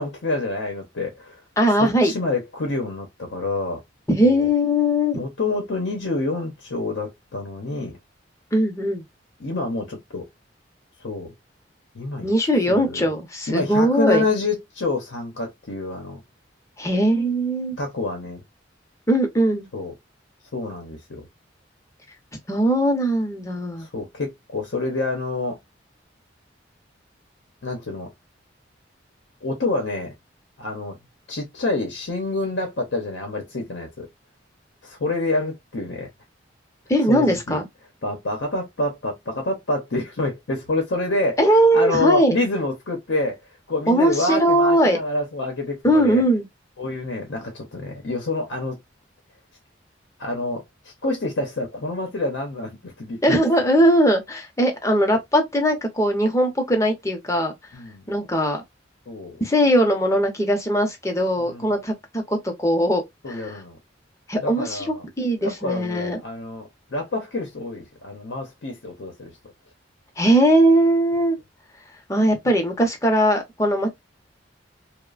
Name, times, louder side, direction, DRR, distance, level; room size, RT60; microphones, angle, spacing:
voice 1, 0.0-1.4 1.7-3.8 4.2-4.5 5.1-8.0 9.4-10.3 11.0-11.3 11.9-12.3 12.7-13.1 13.5-16.2 17.8-18.4 19.7-19.9 20.5-21.3 23.8-25.6 27.6-28.1 29.4-30.1 30.6-31.0 31.3-34.1 34.8-36.1 37.1-37.6 38.0-43.4 43.7-46.2 46.8-48.8 50.2-53.2 57.7-58.0 59.1-59.4 61.4-61.7 63.2-63.8 64.4-65.0 65.4-69.3 72.4-72.5, left 2 dB, 70° left, 0.8 m, -27 dB
voice 2, 1.6-2.1 4.1-5.2 8.5-9.0 12.2-14.2 16.8-17.8 19.1-19.7 22.5-23.9 36.9-37.7 41.4-42.4 43.9-45.0 45.8-46.4 53.2-57.5 58.1-58.6 59.4-63.0 63.3-63.6 64.3-66.2 70.2-71.4 72.1-73.9, equal, 15° left, 0.7 m, -20 dB
3.0 x 2.1 x 2.4 m
head